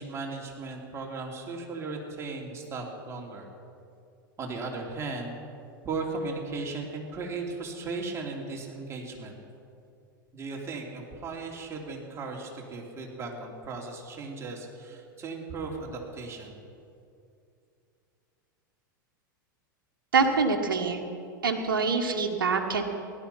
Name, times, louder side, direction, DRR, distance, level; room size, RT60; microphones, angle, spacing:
voice 1, 0.0-3.5 4.4-5.3 5.8-9.4 10.3-16.6, right 3 dB, 25° right, -1 dB, 3.2 m, -36 dB
voice 2, 20.1-21.0 21.4-22.8, right 4 dB, 75° right, 2 dB, 1.4 m, -25 dB
16.5 x 11.5 x 5.7 m, 2.5 s
hypercardioid pair, 95°, 11 cm